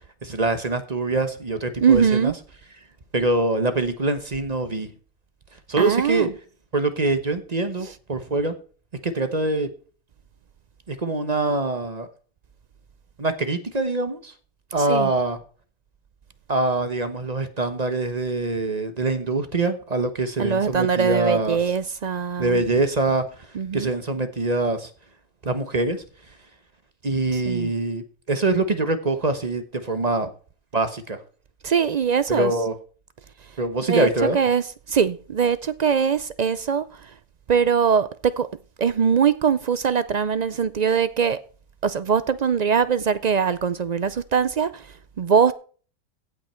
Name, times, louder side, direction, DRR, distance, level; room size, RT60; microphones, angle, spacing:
voice 1, 0.2-2.3 3.1-4.9 5.7-6.3 6.7-8.5 9.0-9.7 10.9-12.1 13.2-14.3 14.7-15.4 16.5-21.6 22.4-23.5 23.7-24.9 25.4-26.0 27.0-30.3 30.7-31.2 32.3-32.8 33.6-34.4, right 2 dB, 35° right, 1.1 m, -24 dB
voice 2, 1.8-2.3 5.8-6.3 7.8-7.9 14.9-15.1 20.4-22.6 23.6-23.9 27.5-27.7 31.6-32.5 33.9-34.1 34.3-34.6 34.9-36.9 37.5-38.5 38.8-41.4 41.8-44.8 45.2-45.5, right 7 dB, 60° right, 0.4 m, -21 dB
16.0 x 6.0 x 4.4 m
omnidirectional pair, 1.4 m